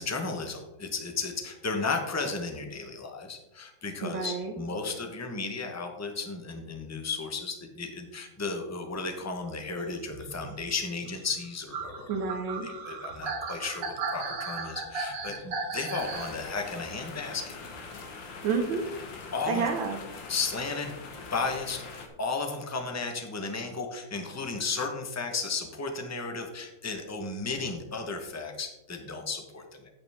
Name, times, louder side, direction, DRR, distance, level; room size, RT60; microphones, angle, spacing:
voice 1, 0.0-12.3 12.6-17.5 19.3-19.7 20.3-20.9 21.3-29.9, left 4 dB, 15° left, 4 dB, 0.7 m, -34 dB
voice 2, 4.0-4.5 12.1-12.7 18.4-18.8 19.5-20.0, right 5 dB, 85° right, 1 dB, 1.7 m, -29 dB
sound 1, 10.0-16.4 17.7-17.8, right 4 dB, 70° right, 1.9 m, -36 dB
sound 2, 16.0-22.1, left 4 dB, 75° left, 2.0 m, -43 dB
9.2 x 8.8 x 3.5 m, 1.0 s
omnidirectional pair, 2.1 m